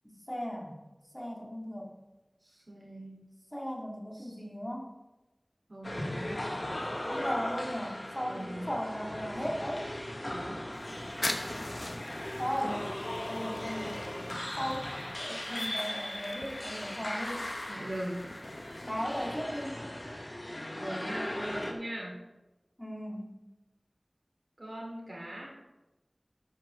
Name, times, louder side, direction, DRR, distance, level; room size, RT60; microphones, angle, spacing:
voice 1, 0.0-0.8 1.1-2.0 3.5-4.9 7.1-9.8 12.4-12.8 13.3-14.1 14.6-14.9 15.2-17.5 18.8-19.8 22.8-23.4, equal, 15° left, -1 dB, 2.4 m, -36 dB
voice 2, 2.4-3.2 4.1-4.4 5.7-6.5 8.3-8.7 10.3-10.7 12.6-12.8 17.7-18.2 20.8-22.1 24.6-25.5, right 1 dB, 80° right, -3 dB, 3.4 m, -40 dB
sound 1, 5.8-21.7, left 1 dB, 55° left, 1.7 m, -38 dB
sound 2, 10.7-19.4, left 1 dB, 70° left, 1.1 m, -43 dB
13.0 x 8.9 x 3.7 m, 1.1 s
wide cardioid pair, 40°, 0 cm